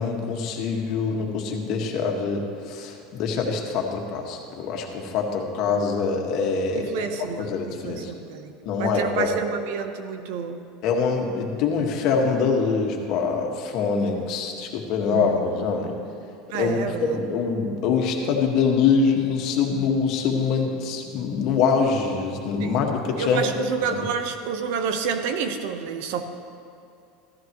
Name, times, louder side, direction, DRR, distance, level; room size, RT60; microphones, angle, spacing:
voice 1, 0.0-7.1 7.4-8.1 8.6-9.3 10.8-15.9 16.5-23.5 23.9-24.1, left 5 dB, 55° left, 1 dB, 1.7 m, -24 dB
voice 2, 6.7-10.6 14.2-14.3 15.1-15.4 16.5-17.2 22.6-22.8 23.2-26.2, right 6 dB, 70° right, 7 dB, 1.0 m, -29 dB
14.5 x 14.0 x 3.1 m, 2.6 s
supercardioid pair, 130°, 0 cm